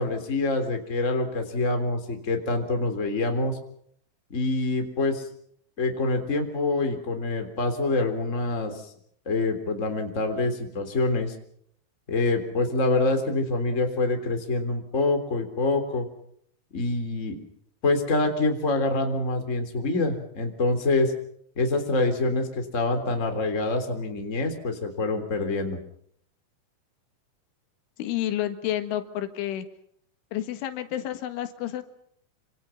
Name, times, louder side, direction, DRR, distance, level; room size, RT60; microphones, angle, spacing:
voice 1, 0.0-3.6 4.3-5.3 5.8-8.9 9.2-11.3 12.1-16.1 16.7-17.4 17.8-21.1 21.5-25.8, left 2 dB, 20° left, 5 dB, 3.1 m, -26 dB
voice 2, 28.0-29.7 30.3-31.8, left 12 dB, 85° left, 9 dB, 4.1 m, -30 dB
27.5 x 26.5 x 5.8 m, 0.67 s
omnidirectional pair, 5.5 m